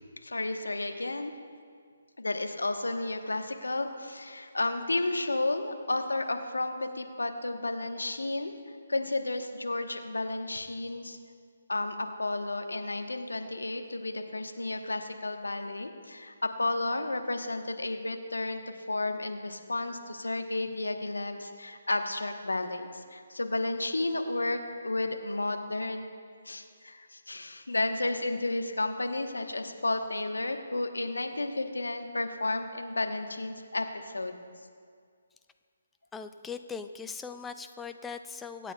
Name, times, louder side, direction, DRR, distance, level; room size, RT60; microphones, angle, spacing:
voice 1, 0.2-1.3 2.2-11.2 11.7-18.6 18.9-26.0 26.4-34.4, left 2 dB, 85° left, 6 dB, 1.1 m, -32 dB
voice 2, 36.1-38.7, left 5 dB, 10° left, 8 dB, 0.4 m, -40 dB
24.5 x 8.9 x 2.3 m, 2.1 s
figure-of-eight pair, 145°, 0 cm